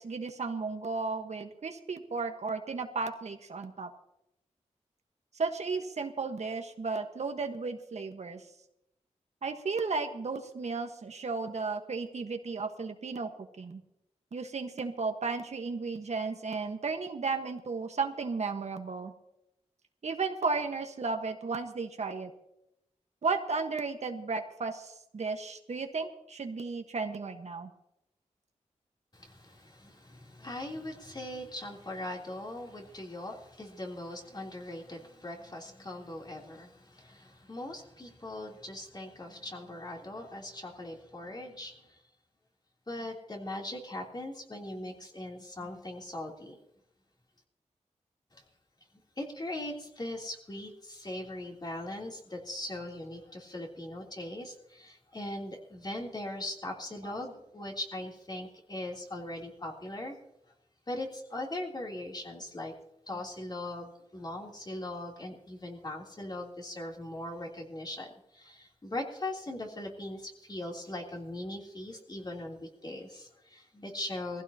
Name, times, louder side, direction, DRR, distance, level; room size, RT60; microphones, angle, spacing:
voice 1, 0.0-3.9 5.3-8.4 9.4-13.3 13.6-13.8 14.3-19.1 20.0-22.3 23.2-27.7 57.0-57.1, right 4 dB, 65° right, 5 dB, 1.4 m, -34 dB
voice 2, 29.1-42.0 42.9-46.6 48.3-48.4 49.2-60.2 60.9-62.7 63.1-74.4, left 1 dB, 35° left, -1 dB, 3.3 m, -40 dB
21.0 x 15.5 x 2.9 m, 0.83 s
wide cardioid pair, 95°, 12 cm